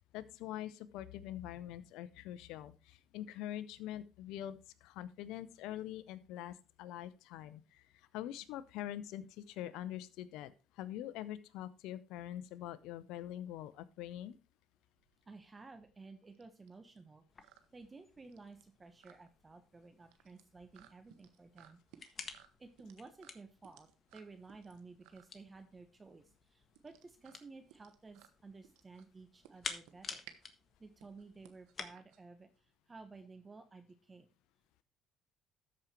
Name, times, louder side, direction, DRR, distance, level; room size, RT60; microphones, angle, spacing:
voice 1, 0.0-14.4, left 12 dB, 80° left, 14 dB, 0.7 m, -44 dB
sound 1, 15.0-32.7, right 11 dB, 85° right, 1.0 m, -63 dB
voice 2, 15.3-22.3 22.6-30.3 30.8-34.3, right 3 dB, 25° right, 7 dB, 1.3 m, -55 dB
sound 2, 17.3-31.9, left 4 dB, 40° left, 1.5 m, -52 dB
13.0 x 5.2 x 4.4 m, 0.31 s
supercardioid pair, 70°, 0 cm